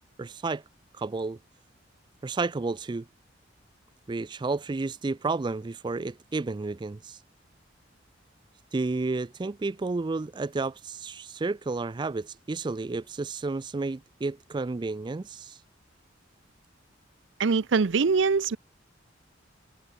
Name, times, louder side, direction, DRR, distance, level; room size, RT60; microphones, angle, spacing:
voice 1, 0.2-0.6 1.0-1.4 2.2-3.1 4.1-7.2 8.7-15.6, right 3 dB, 25° right, 0.4 m, -31 dB
voice 2, 17.4-18.6, right 4 dB, 75° right, 0.6 m, -23 dB
head